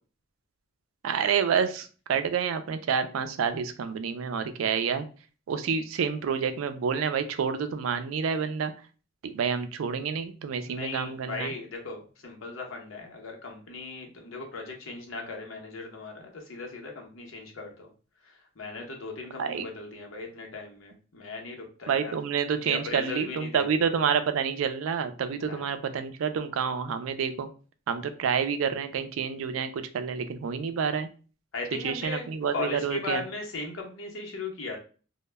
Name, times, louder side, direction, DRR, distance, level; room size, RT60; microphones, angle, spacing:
voice 1, 1.0-5.0 5.5-8.7 9.2-11.5 19.4-19.7 21.9-27.5 27.9-31.1 31.8-33.2, right 6 dB, 80° right, 10 dB, 0.4 m, -28 dB
voice 2, 10.6-17.9 18.2-22.1 22.6-23.8 25.5-25.7 31.5-32.2 32.5-34.8, left 3 dB, 75° left, 2 dB, 0.8 m, -37 dB
2.1 x 2.1 x 3.2 m, 0.37 s
head